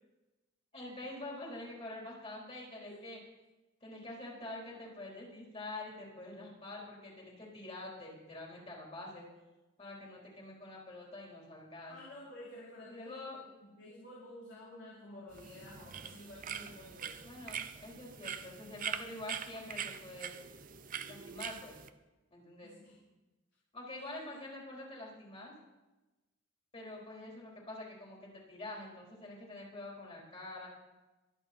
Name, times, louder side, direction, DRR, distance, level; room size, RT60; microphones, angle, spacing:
voice 1, 0.7-3.2 3.8-9.3 9.8-12.0 12.9-13.4 17.2-20.3 21.1-21.8 22.3-22.7 23.7-25.5 26.7-30.7, left 2 dB, 30° left, -2 dB, 4.1 m, -46 dB
voice 2, 11.9-17.2 22.6-23.0, left 1 dB, 60° left, -6 dB, 3.5 m, -51 dB
sound 1, 15.3-21.9, right 8 dB, 45° right, 0.7 m, -43 dB
23.5 x 8.1 x 4.4 m, 1.1 s
head